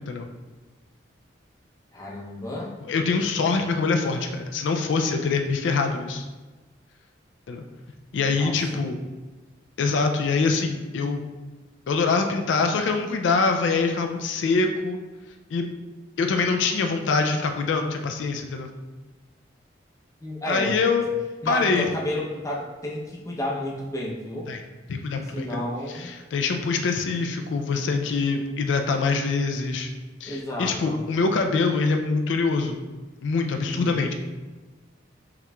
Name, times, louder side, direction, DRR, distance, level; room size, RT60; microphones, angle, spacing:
voice 1, 1.9-2.7 8.3-8.8 20.2-20.8 21.4-24.5 25.2-26.1 28.0-28.6 30.3-31.0 33.7-34.0, left 1 dB, 15° left, -3 dB, 0.5 m, -32 dB
voice 2, 2.9-6.3 7.5-7.6 8.1-9.0 9.8-11.2 11.9-15.0 15.5-15.6 16.2-18.7 20.5-21.0 21.5-21.9 24.5-24.6 24.9-25.6 25.9-29.9 30.2-32.8 33.2-34.1, left 4 dB, 75° left, 5 dB, 0.3 m, -24 dB
5.7 x 3.0 x 2.2 m, 1.2 s
head